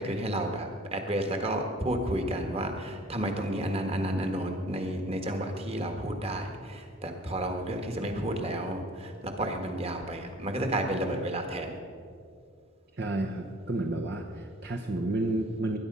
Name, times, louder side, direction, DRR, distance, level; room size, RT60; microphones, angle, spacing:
voice 1, 0.0-11.7, right 1 dB, 30° right, 4 dB, 1.6 m, -31 dB
voice 2, 13.0-15.8, right 2 dB, 50° right, 1 dB, 0.9 m, -31 dB
21.0 x 10.5 x 5.5 m, 2.3 s
head